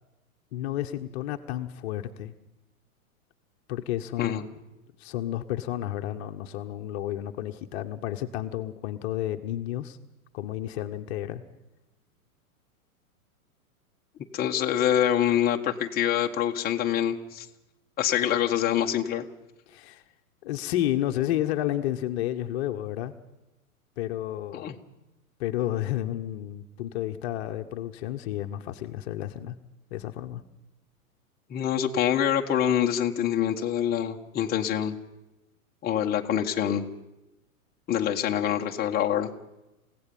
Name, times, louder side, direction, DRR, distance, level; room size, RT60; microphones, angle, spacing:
voice 1, 0.5-2.3 3.7-4.5 5.0-10.0 10.3-11.4 19.7-20.0 20.4-23.1 24.0-24.7 25.4-29.6 29.9-30.4, left 13 dB, 45° left, 6 dB, 1.2 m, -31 dB
voice 2, 14.3-17.5 18.0-19.3 24.5-24.7 31.5-34.9 35.8-36.8 37.9-39.3, left 10 dB, 20° left, 2 dB, 1.3 m, -25 dB
29.0 x 16.5 x 5.6 m, 0.98 s
figure-of-eight pair, 105°, 44 cm